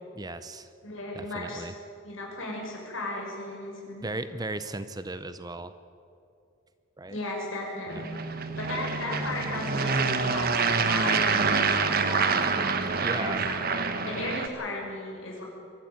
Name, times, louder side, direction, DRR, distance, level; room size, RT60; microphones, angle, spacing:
voice 1, 0.1-0.7 1.1-1.7 4.0-5.7 7.0-7.2 7.9-8.0 13.0-13.5, right 2 dB, 20° right, 12 dB, 0.6 m, -36 dB
voice 2, 0.8-1.7 2.0-4.1 7.1-8.2 8.6-12.4 13.2-15.4, left 2 dB, 70° left, -1 dB, 6.3 m, -35 dB
sound 1, 7.9-14.5, right 4 dB, 45° right, 1.2 m, -26 dB
22.5 x 14.0 x 9.6 m, 2.6 s
head